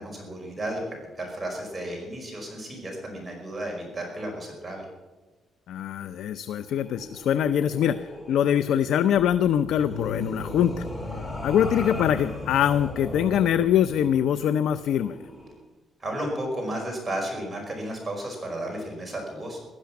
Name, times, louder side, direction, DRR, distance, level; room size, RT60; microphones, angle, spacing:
voice 1, 0.0-4.8 16.0-19.6, right 1 dB, 15° right, -1 dB, 5.1 m, -33 dB
voice 2, 5.7-10.9 11.4-15.2, left 9 dB, 80° left, 12 dB, 0.6 m, -23 dB
sound 1, 6.6-15.6, left 2 dB, 15° left, 3.8 m, -37 dB
16.0 x 12.5 x 6.0 m, 1.2 s
cardioid pair, 120°, 0 cm